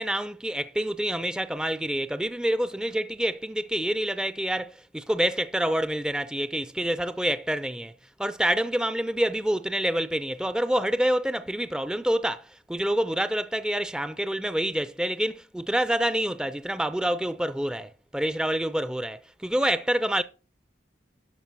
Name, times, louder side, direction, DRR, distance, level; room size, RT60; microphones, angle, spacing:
voice 1, 0.0-7.9 8.2-20.2, right 1 dB, 5° right, 0.4 m, -27 dB
12.0 x 5.0 x 5.6 m
head